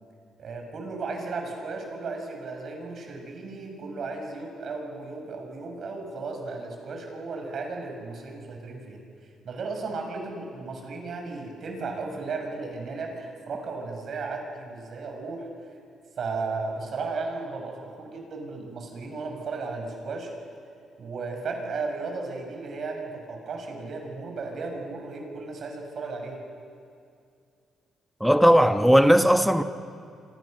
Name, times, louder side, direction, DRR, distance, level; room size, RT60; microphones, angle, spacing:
voice 1, 0.4-9.0 9.4-15.5 16.2-20.3 21.0-26.4, right 3 dB, 55° right, 6.7 m, -35 dB
voice 2, 28.2-29.6, equal, ahead, 1.3 m, -17 dB
28.0 x 26.5 x 6.8 m
cardioid pair, 90°, 0 cm